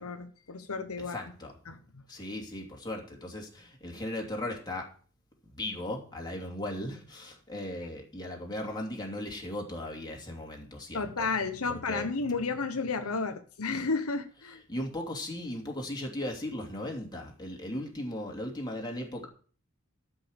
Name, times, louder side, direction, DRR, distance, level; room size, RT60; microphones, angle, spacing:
voice 1, 0.0-1.2 1.7-2.0 10.9-14.6, left 4 dB, 80° left, 8 dB, 1.0 m, -32 dB
voice 2, 1.1-1.5 2.1-4.9 5.4-11.3 11.9-12.1 14.7-19.3, left 1 dB, 20° left, 0 dB, 2.8 m, -37 dB
13.0 x 5.8 x 7.9 m, 0.42 s
head